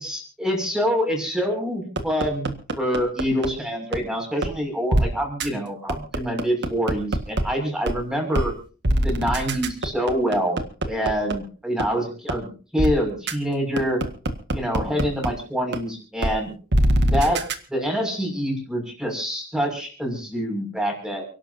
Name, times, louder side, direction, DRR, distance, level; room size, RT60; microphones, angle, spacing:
voice 1, 0.0-8.5 9.0-10.6 10.9-14.0 14.5-16.5 17.1-17.4 17.7-21.2, equal, 5° right, 2 dB, 6.3 m, -26 dB
sound 1, 2.0-3.5 3.9-4.0 4.4-4.5 4.9-5.0 5.4-5.5 5.9-7.4 7.9-8.0 8.3-8.5 8.8-11.3 11.8-11.9 12.3-12.4 12.8-12.9 13.3-13.4 13.8-15.3 15.7-15.8 16.2-16.3 16.7-17.5, right 1 dB, 55° right, 1.7 m, -22 dB
29.5 x 12.0 x 2.8 m, 0.37 s
head